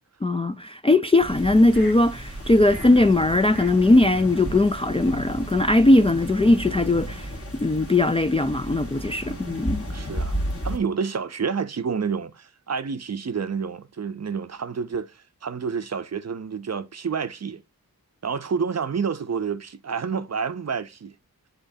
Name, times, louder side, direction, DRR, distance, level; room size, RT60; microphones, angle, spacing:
voice 1, 0.2-7.3 7.6-9.8, left 2 dB, 15° left, 0.3 m, -19 dB
sound 1, 1.2-7.4, right 2 dB, ahead, 1.2 m, -39 dB
sound 2, 1.3-10.8, equal, 40° left, 1.7 m, -34 dB
voice 2, 9.3-9.6 9.9-10.4 10.6-17.6 18.2-21.1, right 6 dB, 45° right, 0.5 m, -29 dB
9.9 x 3.9 x 2.6 m
wide cardioid pair, 70°, 37 cm